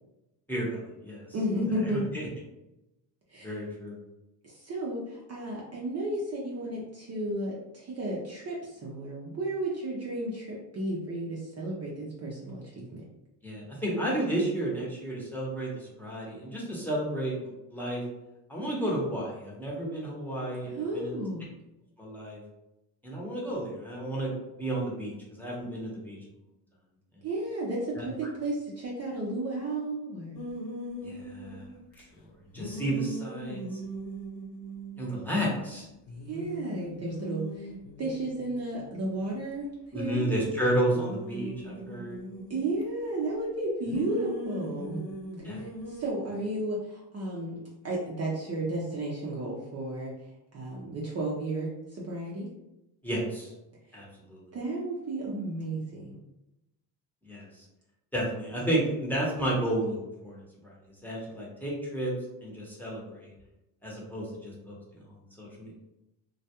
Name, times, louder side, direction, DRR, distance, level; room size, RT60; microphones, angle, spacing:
voice 1, 0.5-1.3 1.9-2.3 3.4-4.0 13.4-18.0 18.5-21.2 22.0-22.4 23.0-24.3 24.6-26.2 28.0-28.1 31.0-31.7 32.0-32.1 32.5-33.8 35.0-35.9 39.9-42.2 45.4-45.6 53.0-53.5 53.9-54.4 57.2-57.4 58.1-60.7 61.0-62.1 62.4-63.3 63.8-65.7, right 1 dB, 5° left, -5 dB, 1.0 m, -32 dB
voice 2, 1.3-2.2 3.3-3.6 4.4-13.0 18.7-18.9 20.6-21.5 27.2-30.4 36.3-37.7 38.0-40.3 42.5-45.0 45.4-47.6 47.8-50.1 50.5-52.5 53.9-54.0 54.5-56.2, right 1 dB, 35° right, -4 dB, 0.6 m, -33 dB
sound 1, 30.3-32.0 32.5-35.5 35.7-35.8 36.1-39.5 40.1-42.8 43.8-46.1, equal, 70° left, 0.7 m, -40 dB
2.3 x 2.1 x 2.8 m, 0.91 s
supercardioid pair, 75°, 46 cm